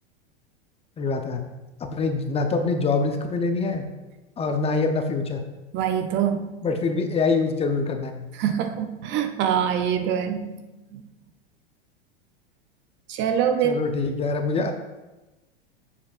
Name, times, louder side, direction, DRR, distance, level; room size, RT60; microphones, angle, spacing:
voice 1, 1.0-1.5 1.8-3.9 4.4-5.4 6.6-8.3 13.6-14.7, left 4 dB, 20° left, 5 dB, 0.6 m, -25 dB
voice 2, 5.7-6.5 8.3-10.5 10.9-11.0 13.1-13.8, right 8 dB, 40° right, 8 dB, 0.5 m, -24 dB
7.0 x 6.8 x 2.4 m, 1.1 s
hypercardioid pair, 110°, 30 cm